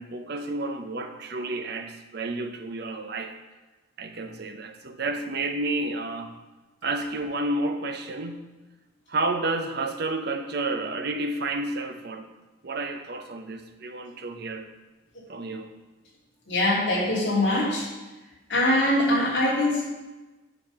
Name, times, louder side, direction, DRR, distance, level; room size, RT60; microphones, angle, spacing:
voice 1, 0.0-3.4 4.0-6.3 6.8-8.5 9.1-12.3 12.6-14.7 15.3-15.7, right 2 dB, 50° right, 7 dB, 0.7 m, -30 dB
voice 2, 16.5-17.9 18.5-19.8, left 1 dB, 60° left, -6 dB, 2.9 m, -23 dB
10.5 x 4.3 x 5.7 m, 1.1 s
head